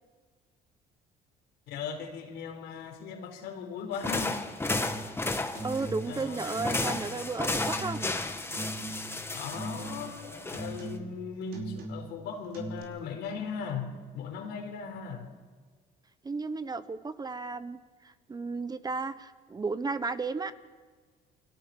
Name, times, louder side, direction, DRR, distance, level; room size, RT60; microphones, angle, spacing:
voice 1, 1.7-4.4 6.1-6.9 9.3-15.3, left 6 dB, 90° left, 4 dB, 4.4 m, -38 dB
sound 1, 3.9-11.0, left 2 dB, 15° left, 1.8 m, -33 dB
sound 2, 4.8-5.2 5.5-6.2 6.5-7.2 7.5-8.2 8.5-9.2 9.5-10.2 10.5-11.2 11.5-12.2 12.5-12.8, right 2 dB, 65° right, 5.1 m, -40 dB
voice 2, 5.6-8.1 16.2-20.5, right 4 dB, 25° right, 12 dB, 1.1 m, -34 dB
28.5 x 23.5 x 6.1 m, 1.5 s
cardioid pair, 110°, 17 cm